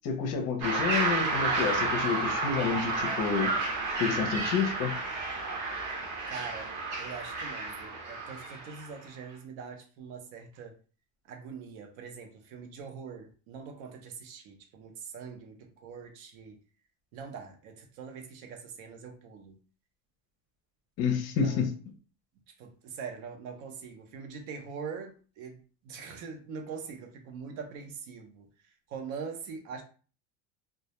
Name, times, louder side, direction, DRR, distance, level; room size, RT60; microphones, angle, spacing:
voice 1, 0.0-3.5 4.0-4.9 21.0-21.7, left 6 dB, 40° left, 0.4 m, -29 dB
sound 1, 0.6-8.9, right 3 dB, 50° right, 0.7 m, -31 dB
voice 2, 6.3-10.8 11.3-16.6 17.1-19.6 21.4-21.7 22.5-29.8, right 5 dB, 85° right, 0.7 m, -43 dB
2.2 x 2.1 x 2.8 m
cardioid pair, 165°, 39 cm